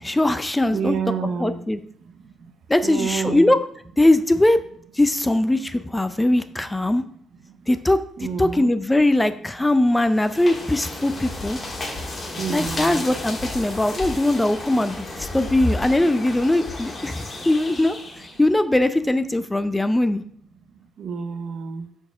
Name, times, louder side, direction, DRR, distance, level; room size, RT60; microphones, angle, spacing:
voice 1, 0.0-1.0 1.4-1.8 2.7-3.6 4.0-4.6 4.9-7.0 7.7-8.0 8.4-11.6 12.5-20.2, left 1 dB, 10° left, 11 dB, 0.4 m, -20 dB
voice 2, 0.7-1.6 2.8-3.5 8.2-8.7 12.3-13.1 21.0-21.9, right 6 dB, 65° right, 9 dB, 0.7 m, -28 dB
sound 1, 10.0-18.5, left 2 dB, 30° left, 1.6 m, -32 dB
4.8 x 4.2 x 5.5 m, 0.62 s
cardioid pair, 90°, 0 cm